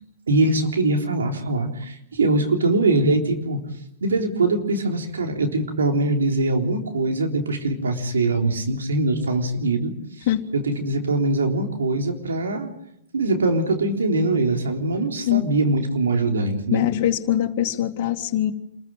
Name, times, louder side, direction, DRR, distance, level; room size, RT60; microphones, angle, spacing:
voice 1, 0.3-3.6 4.0-9.9 10.2-10.3 10.5-12.7 13.1-16.9, right 2 dB, 85° right, 3 dB, 3.7 m, -22 dB
voice 2, 16.7-18.5, left 12 dB, 50° left, 2 dB, 2.3 m, -22 dB
27.5 x 15.0 x 9.2 m, 0.79 s
hypercardioid pair, 120°, 0 cm